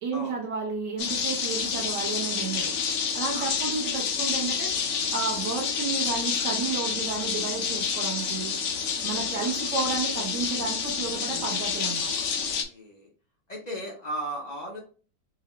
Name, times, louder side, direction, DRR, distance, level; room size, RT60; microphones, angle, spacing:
voice 1, 0.0-2.8 3.1-4.7 5.1-8.5 9.0-12.1, right 4 dB, 80° right, 1.4 m, -32 dB
sound 1, 1.0-12.6, left 6 dB, 65° left, 0.9 m, -29 dB
voice 2, 9.2-9.5 11.1-12.1 12.3-13.1 13.5-14.8, right 1 dB, 35° left, 0.7 m, -38 dB
3.8 x 2.9 x 3.0 m
omnidirectional pair, 1.8 m